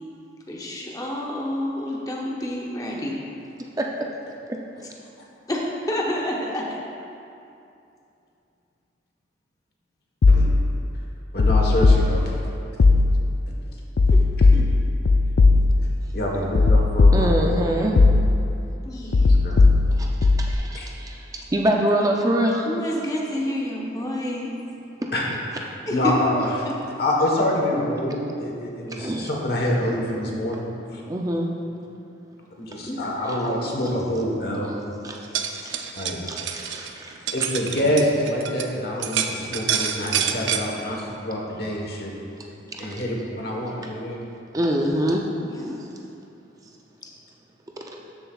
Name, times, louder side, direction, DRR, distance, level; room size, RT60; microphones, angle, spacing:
voice 1, 0.5-3.2 5.5-6.8 14.1-14.2 14.5-14.7 18.8-19.6 22.6-24.5 25.9-26.1 26.6-26.7 32.9-33.0 35.6-35.7 45.4-45.8, left 1 dB, 20° left, -3 dB, 0.7 m, -29 dB
voice 2, 3.8-4.1 4.5-4.6 17.1-18.0 20.0-22.7 25.0-25.1 28.9-29.3 31.1-31.5 33.2-33.4 35.0-35.3 35.6-35.9 36.3-37.3 42.7-43.0 44.5-45.2 45.8-45.9 47.8-48.0, right 1 dB, 20° right, 0 dB, 0.4 m, -25 dB
sound 1, 10.2-10.8 11.4-12.5 12.8-13.4 14.0-16.0 16.5-17.6 18.0-18.6 19.1-20.5, left 3 dB, 70° left, 0.3 m, -17 dB
voice 3, 11.3-12.5 16.1-17.3 19.4-19.7 20.7-20.9 25.1-25.2 25.6-26.7 27.0-31.0 32.6-34.7 35.9-36.2 37.3-42.1 42.8-44.2, left 1 dB, 55° left, -1 dB, 1.3 m, -26 dB
sound 2, 35.1-38.7 39.0-40.6, right 8 dB, 85° right, 0.5 m, -27 dB
12.5 x 6.9 x 2.4 m, 2.7 s
head